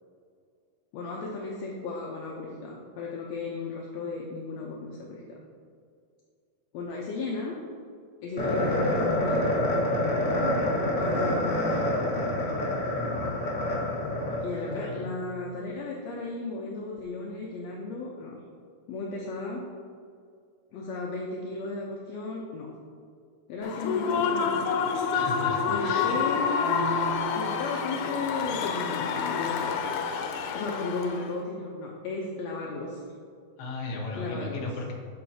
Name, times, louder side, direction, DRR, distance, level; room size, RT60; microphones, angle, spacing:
voice 1, 0.9-5.2 6.7-7.6 8.2-9.6 11.0-12.1 14.4-18.4 18.9-19.6 20.7-22.7 23.5-24.7 25.7-26.7 27.3-29.9 30.5-33.0 34.1-34.7, left 3 dB, 75° left, -2 dB, 1.8 m, -35 dB
sound 1, 8.4-14.8, left 1 dB, 35° left, 1.7 m, -27 dB
voice 2, 14.8-15.2 25.1-26.2 33.6-34.9, left 2 dB, 55° left, -2 dB, 1.7 m, -36 dB
Human voice / Cheering / Applause, 23.6-31.3, left 6 dB, 90° left, 2.1 m, -28 dB
Marimba xylophone, 26.6-29.6, right 14 dB, 65° right, 1.8 m, -41 dB
8.7 x 6.6 x 2.7 m, 2.3 s
omnidirectional pair, 3.4 m